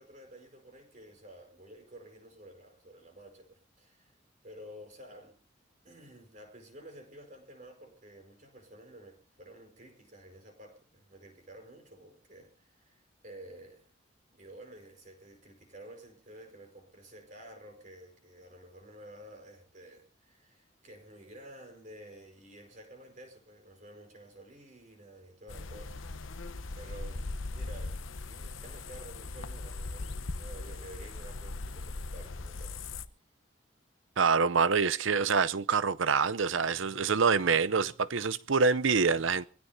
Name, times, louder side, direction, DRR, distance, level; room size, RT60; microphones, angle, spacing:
voice 1, 0.0-4.1 4.4-5.4 5.8-13.9 14.3-26.2 26.7-32.8, right 1 dB, 40° right, 5.0 m, -51 dB
sound 1, 25.5-33.1, left 3 dB, 85° left, 0.9 m, -39 dB
voice 2, 34.2-39.5, right 5 dB, 80° right, 0.7 m, -26 dB
24.5 x 16.5 x 2.7 m
head